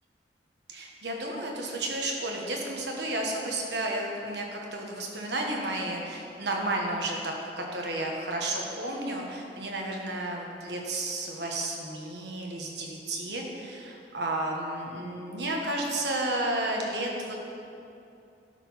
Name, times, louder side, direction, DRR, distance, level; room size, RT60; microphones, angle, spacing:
voice 1, 0.7-17.4, right 1 dB, 70° right, 0 dB, 1.4 m, -32 dB
12.0 x 4.7 x 5.7 m, 2.7 s
head